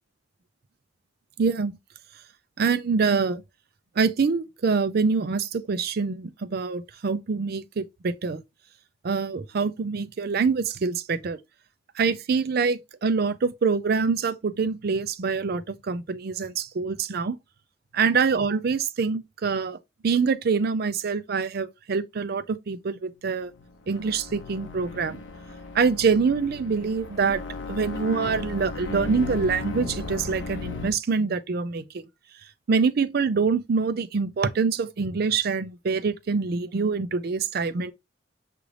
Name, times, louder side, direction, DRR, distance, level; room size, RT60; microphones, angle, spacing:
voice 1, 1.4-1.8 2.6-3.4 4.0-8.4 9.0-11.4 12.0-17.4 17.9-19.8 20.0-23.5 23.9-25.2 25.7-32.1 32.7-37.9, right 5 dB, 50° right, 0.4 m, -25 dB
sound 1, 23.4-30.9, left 3 dB, 65° left, 0.6 m, -36 dB
6.2 x 2.5 x 3.2 m
head